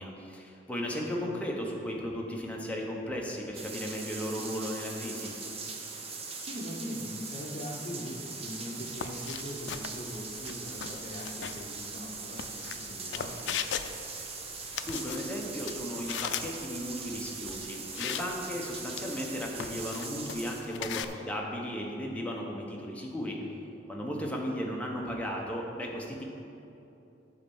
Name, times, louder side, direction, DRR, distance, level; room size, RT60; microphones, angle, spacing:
voice 1, 0.0-5.3 14.5-23.4 23.9-26.2, equal, 10° left, -2 dB, 1.1 m, -36 dB
sound 1, 3.5-20.6, right 4 dB, 35° right, 0.9 m, -41 dB
voice 2, 4.3-4.7 6.4-13.5 20.6-20.9, equal, 40° left, -2 dB, 1.1 m, -41 dB
sound 2, 8.8-21.0, left 8 dB, 85° left, 0.4 m, -40 dB
8.9 x 4.3 x 7.1 m, 2.8 s
head